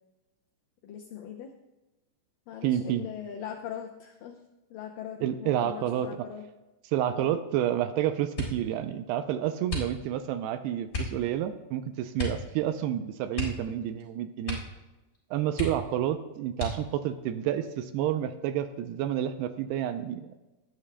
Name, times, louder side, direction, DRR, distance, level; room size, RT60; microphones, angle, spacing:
voice 1, 0.8-1.5 2.5-4.4 4.7-6.5 7.2-7.4 13.7-13.9, left 9 dB, 85° left, 3 dB, 1.9 m, -41 dB
voice 2, 2.6-3.1 5.2-6.3 6.9-14.6 15.3-20.3, right 11 dB, 80° right, 9 dB, 2.5 m, -29 dB
sound 1, 8.3-8.8 9.6-10.3 10.9-11.2 12.1-12.5 12.8-12.9 13.3-14.1 14.4-14.8 15.1-15.2 15.5-16.1 16.5-17.1 17.8-18.4 18.8-19.2, left 2 dB, 25° left, 4.2 m, -35 dB
19.0 x 11.0 x 2.2 m, 1.1 s
omnidirectional pair, 4.8 m